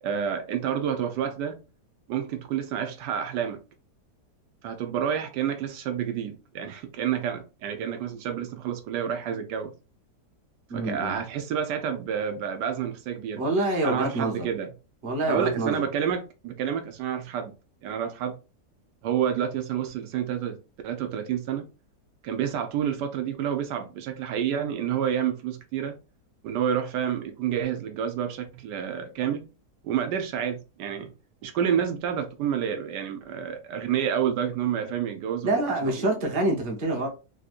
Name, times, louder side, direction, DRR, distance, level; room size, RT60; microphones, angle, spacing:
voice 1, 0.0-1.6 2.1-3.6 4.6-9.7 10.7-13.4 13.8-14.7 15.3-17.5 17.8-18.4 19.0-21.7 22.2-26.0 26.4-29.4 29.8-31.1 31.4-36.1 36.9-37.1, right 8 dB, 80° right, 1.2 m, -29 dB
voice 2, 10.7-11.1 13.3-14.5 15.0-15.9 35.4-37.1, right 2 dB, 35° right, 1.0 m, -26 dB
3.4 x 2.6 x 2.4 m
omnidirectional pair, 1.8 m